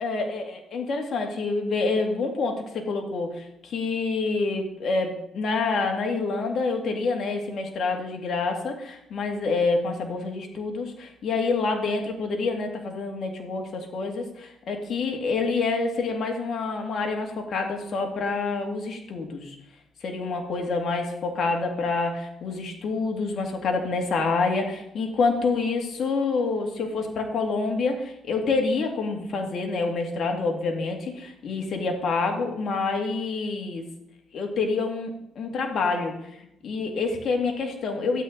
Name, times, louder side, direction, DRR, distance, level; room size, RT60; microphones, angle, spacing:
voice 1, 0.0-19.5 20.0-33.9 34.3-36.1 36.6-38.2, left 3 dB, 60° left, 2 dB, 2.2 m, -27 dB
12.5 x 8.8 x 3.9 m, 0.82 s
cardioid pair, 90°, 0 cm